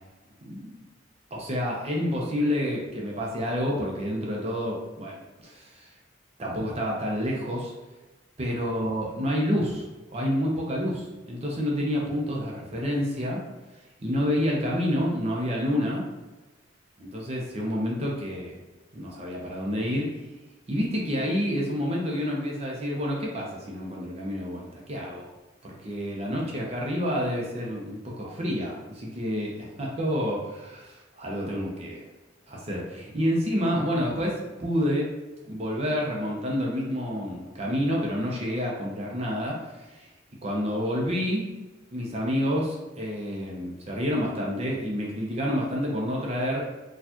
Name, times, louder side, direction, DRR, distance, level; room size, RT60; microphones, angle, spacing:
voice 1, 0.4-0.8 1.3-5.9 6.4-7.7 8.4-13.4 14.0-16.0 17.0-18.6 18.9-20.2 20.7-25.3 25.6-32.0 32.5-35.1 35.5-40.1 40.4-41.5 41.9-46.7, equal, 35° right, -2 dB, 0.6 m, -29 dB
4.2 x 2.3 x 2.8 m, 1.1 s
head